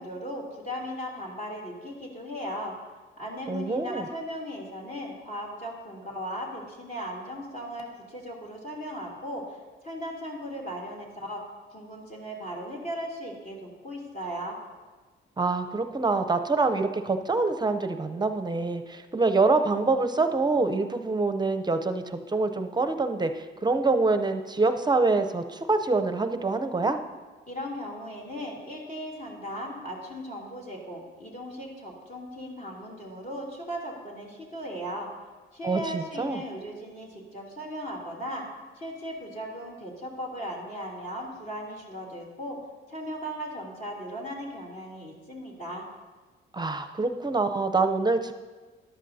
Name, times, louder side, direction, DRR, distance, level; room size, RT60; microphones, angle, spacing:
voice 1, 0.0-2.7 3.2-14.6 27.5-35.1 35.5-38.4 38.8-42.6 42.9-45.9, equal, 45° left, -2 dB, 3.0 m, -37 dB
voice 2, 3.5-4.0 15.4-27.0 35.6-36.4 46.5-48.4, right 3 dB, 20° right, 8 dB, 0.6 m, -25 dB
14.5 x 11.0 x 2.7 m, 1.3 s
cardioid pair, 90°, 20 cm